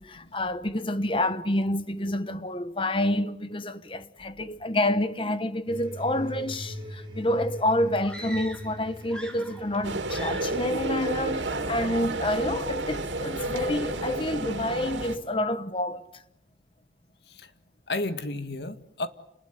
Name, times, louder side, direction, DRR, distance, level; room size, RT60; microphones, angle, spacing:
voice 1, 0.0-16.0, left 1 dB, 30° left, 1.2 m, -28 dB
sound 1, 5.7-12.4, equal, 25° right, 7.5 m, -42 dB
sound 2, 8.0-8.8 9.0-9.8 10.1-10.6, right 1 dB, 5° left, 3.7 m, -41 dB
sound 3, 9.8-15.2, right 2 dB, 90° right, 3.1 m, -31 dB
voice 2, 17.9-19.1, left 2 dB, 65° left, 1.9 m, -32 dB
30.0 x 20.5 x 9.5 m
head